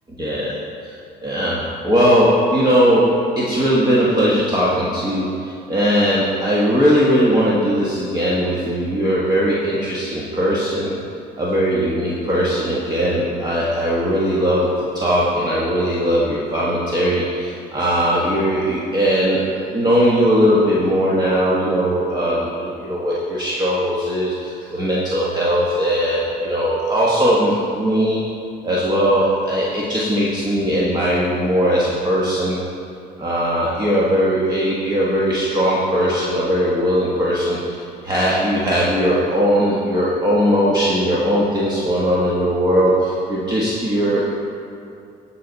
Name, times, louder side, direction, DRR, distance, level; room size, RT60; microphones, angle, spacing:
voice 1, 0.2-0.6 1.2-10.9 11.4-14.7 14.9-28.2 28.6-32.6 33.2-44.3, equal, 25° right, -6 dB, 1.4 m, -19 dB
17.0 x 6.0 x 4.0 m, 2.5 s
cardioid pair, 110°, 17 cm